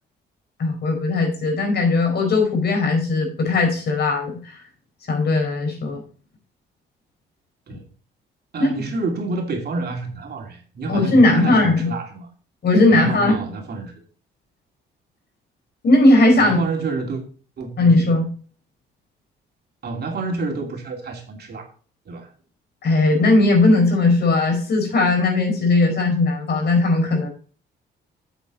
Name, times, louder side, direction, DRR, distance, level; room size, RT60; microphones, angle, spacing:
voice 1, 0.6-4.6 5.1-6.0 8.6-8.7 10.9-11.9 12.6-13.4 15.8-16.6 17.8-18.3 22.8-27.3, left 2 dB, 55° left, 4.6 m, -18 dB
voice 2, 8.5-12.3 12.9-13.9 16.4-17.2 17.6-17.9 19.8-21.7 22.1-22.3, right 3 dB, 55° right, 2.7 m, -29 dB
8.2 x 8.1 x 4.0 m
cardioid pair, 90°, 20 cm